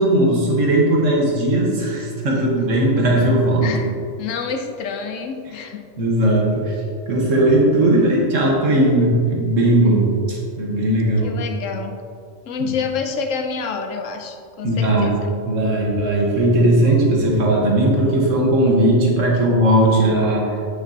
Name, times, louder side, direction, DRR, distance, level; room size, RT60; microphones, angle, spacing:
voice 1, 0.0-3.7 6.0-6.8 7.1-11.3 14.6-15.1 15.5-20.6, right 1 dB, 85° right, -3 dB, 1.7 m, -17 dB
voice 2, 4.2-5.9 11.2-12.0 12.4-15.3, left 5 dB, 85° left, 5 dB, 1.1 m, -28 dB
9.1 x 6.0 x 2.8 m, 2.3 s
omnidirectional pair, 1.3 m